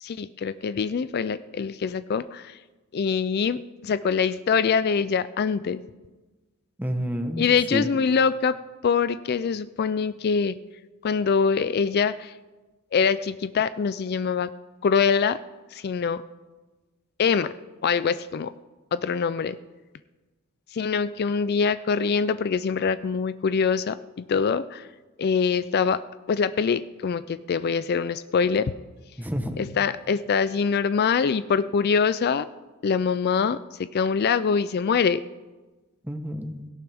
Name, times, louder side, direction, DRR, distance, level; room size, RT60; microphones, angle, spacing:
voice 1, 0.0-2.6 2.9-5.8 7.4-8.6 8.8-10.5 11.0-12.3 12.9-14.5 14.8-15.4 15.7-16.2 17.2-17.5 17.8-18.5 18.9-19.6 20.7-24.0 24.3-24.9 25.2-26.0 26.3-28.7 29.6-32.5 32.8-35.2, left 6 dB, 50° left, 14 dB, 0.4 m, -24 dB
voice 2, 6.8-7.9 29.2-29.6 36.0-36.6, equal, 10° right, 7 dB, 1.0 m, -29 dB
17.5 x 16.5 x 3.5 m, 1.2 s
head